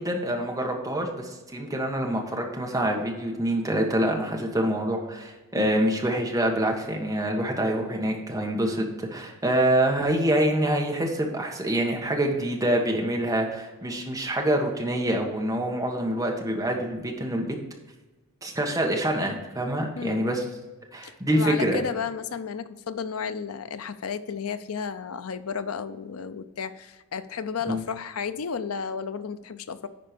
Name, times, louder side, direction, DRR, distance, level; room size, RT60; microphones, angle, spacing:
voice 1, 0.0-17.6 18.4-20.4 20.9-21.8 27.7-27.8, right 1 dB, 15° right, 1 dB, 1.4 m, -26 dB
voice 2, 20.0-20.3 21.0-29.9, left 6 dB, 90° left, 12 dB, 0.6 m, -33 dB
10.5 x 4.4 x 5.2 m, 1.2 s
head